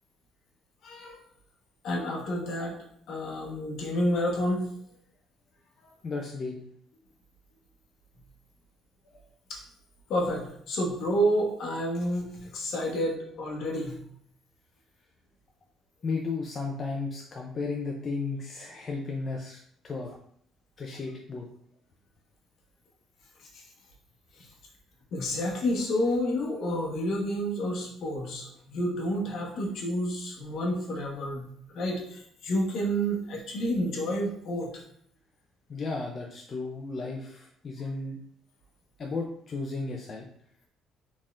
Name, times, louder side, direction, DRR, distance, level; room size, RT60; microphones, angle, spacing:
voice 1, 0.8-1.2 1.8-2.8 3.1-4.7 5.8-5.9 9.5-9.6 10.1-14.0 23.5-23.6 25.1-31.5 31.7-34.8, equal, 65° left, -1 dB, 1.1 m, -29 dB
voice 2, 6.0-6.6 16.0-20.2 20.8-21.5 35.7-38.2 39.0-40.2, left 3 dB, 40° left, 0 dB, 0.5 m, -34 dB
4.0 x 3.6 x 2.4 m, 0.66 s
cardioid pair, 100°, 0 cm